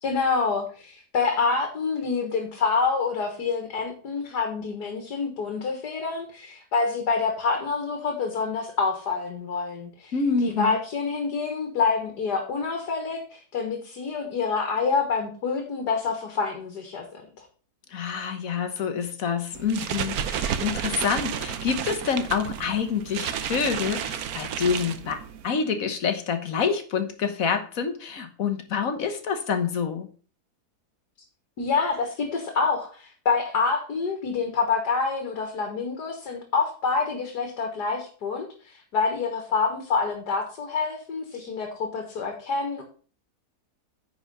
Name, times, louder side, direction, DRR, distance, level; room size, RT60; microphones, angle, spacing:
voice 1, 0.0-10.1 10.4-17.2 31.6-42.8, left 4 dB, 75° left, 4 dB, 2.1 m, -27 dB
voice 2, 10.1-10.8 17.9-25.2 25.4-30.1, left 6 dB, 60° left, 7 dB, 1.5 m, -27 dB
sound 1, 19.5-25.5, right 8 dB, 70° right, 1.2 m, -31 dB
9.8 x 4.9 x 5.4 m, 0.40 s
omnidirectional pair, 1.7 m